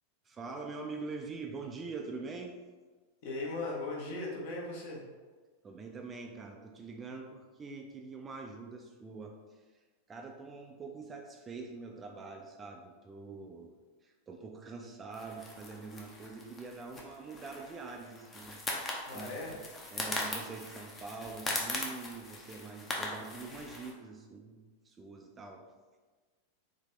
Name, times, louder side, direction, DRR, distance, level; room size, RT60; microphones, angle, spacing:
voice 1, 0.3-2.5 5.6-9.6 10.1-13.7 14.0-18.6 19.1-19.6 19.9-24.6 24.9-25.6, right 4 dB, 20° right, 2 dB, 0.4 m, -44 dB
voice 2, 3.2-5.0 19.1-19.6, left 2 dB, 50° left, -3 dB, 1.1 m, -38 dB
sound 1, 15.1-23.9, left 2 dB, 20° left, 0.7 m, -40 dB
4.0 x 2.6 x 3.3 m, 1.4 s
figure-of-eight pair, 90°, 0 cm